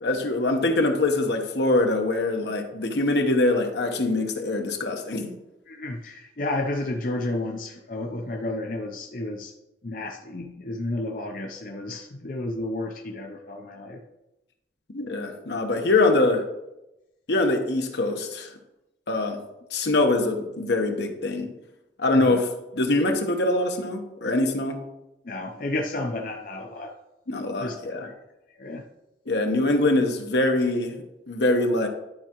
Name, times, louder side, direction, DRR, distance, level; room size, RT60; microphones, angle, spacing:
voice 1, 0.0-5.3 14.9-16.4 17.3-18.5 19.1-19.4 19.7-21.5 22.0-22.5 22.7-24.8 27.3-28.1 29.3-31.9, left 2 dB, 70° left, 4 dB, 1.0 m, -23 dB
voice 2, 5.7-9.5 9.8-14.0 22.2-22.4 25.2-27.0 27.6-27.8 28.1-28.2 28.6-28.9, left 2 dB, 45° left, 1 dB, 0.6 m, -31 dB
11.5 x 4.7 x 3.0 m, 0.93 s
head